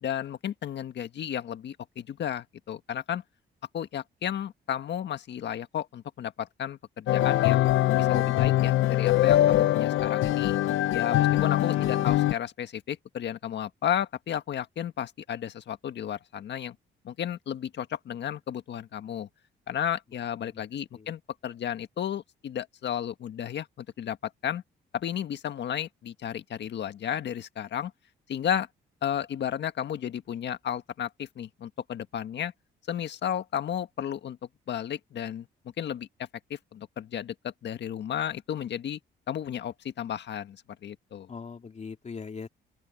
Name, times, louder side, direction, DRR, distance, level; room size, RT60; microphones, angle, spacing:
voice 1, 0.0-3.2 3.7-7.6 7.9-10.6 10.9-16.8 17.0-19.3 19.7-24.6 24.9-27.9 28.3-28.7 29.0-32.5 32.9-34.4 34.7-35.5 35.8-36.1 36.5-39.0 39.3-41.3, left 9 dB, 60° left, 1.6 m, -33 dB
sound 1, 7.1-12.3, left 14 dB, 80° left, 0.7 m, -23 dB
voice 2, 11.7-12.1 20.4-20.6 20.9-21.1 41.3-42.5, left 5 dB, 35° left, 2.7 m, -41 dB
open air
cardioid pair, 90°, 20 cm